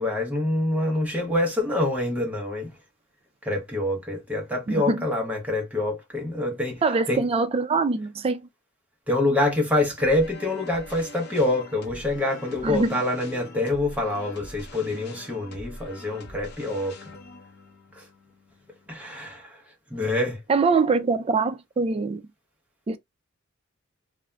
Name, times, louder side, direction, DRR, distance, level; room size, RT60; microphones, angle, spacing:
voice 1, 0.0-2.7 3.4-6.8 7.1-7.2 9.1-17.0 17.9-18.1 18.9-19.6 19.9-20.4, left 2 dB, 5° right, 0.8 m, -26 dB
voice 2, 4.7-5.1 6.8-8.4 12.6-13.0 20.5-22.2 22.9-23.0, right 4 dB, 30° right, 0.3 m, -23 dB
sound 1, 10.0-19.1, left 1 dB, 55° left, 0.7 m, -44 dB
2.5 x 2.1 x 3.2 m
head